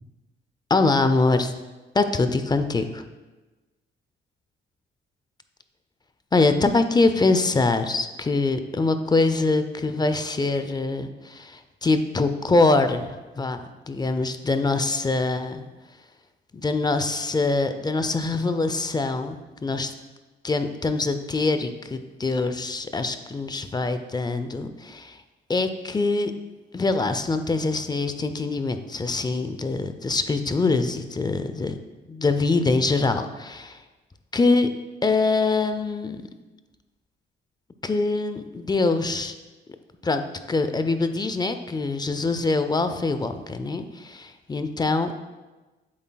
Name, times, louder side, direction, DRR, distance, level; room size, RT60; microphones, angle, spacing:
voice 1, 0.7-1.5 1.9-3.0 6.3-13.6 13.9-15.6 16.5-19.9 20.4-25.2 25.5-26.3 26.7-31.8 32.1-33.8 34.3-34.7 35.0-36.2 37.8-39.3 40.0-45.2, left 3 dB, 20° left, 9 dB, 0.5 m, -24 dB
8.2 x 7.3 x 2.3 m, 1.2 s
cardioid pair, 90°, 20 cm